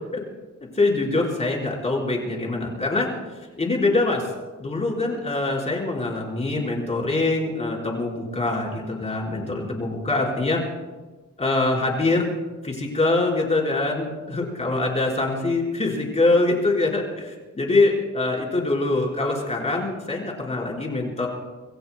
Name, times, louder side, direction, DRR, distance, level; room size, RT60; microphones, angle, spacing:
voice 1, 0.6-3.1 3.6-4.3 4.6-10.6 11.4-12.3 12.6-21.3, left 2 dB, 25° left, -2 dB, 4.8 m, -24 dB
27.5 x 22.0 x 2.3 m, 1.2 s
wide cardioid pair, 160°, 29 cm